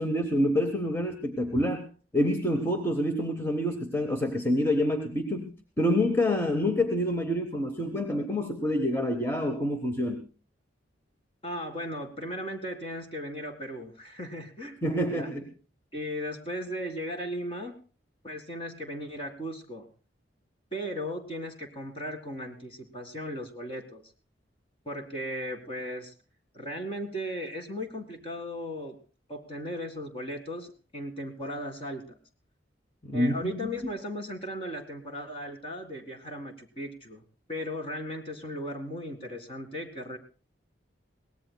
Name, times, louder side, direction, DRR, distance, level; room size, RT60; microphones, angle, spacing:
voice 1, 0.0-10.2 14.8-15.4 33.0-33.7, left 1 dB, 15° left, 5 dB, 1.0 m, -27 dB
voice 2, 11.4-14.8 15.1-15.3 15.9-17.8 18.2-19.9 20.7-24.0 24.9-26.1 26.5-29.0 29.3-32.2 33.1-37.2 37.5-40.2, equal, 30° left, 5 dB, 1.9 m, -36 dB
22.5 x 18.0 x 2.3 m, 0.35 s
head